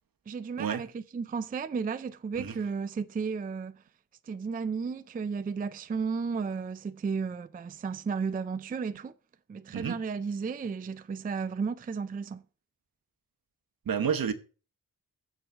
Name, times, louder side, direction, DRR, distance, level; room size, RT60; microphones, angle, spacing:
voice 1, 0.3-3.8 4.2-9.1 9.5-12.4, right 5 dB, 25° right, 0.3 m, -33 dB
voice 2, 13.8-14.3, right 7 dB, 70° right, 1.1 m, -30 dB
7.7 x 4.7 x 7.0 m
wide cardioid pair, 125°, 36 cm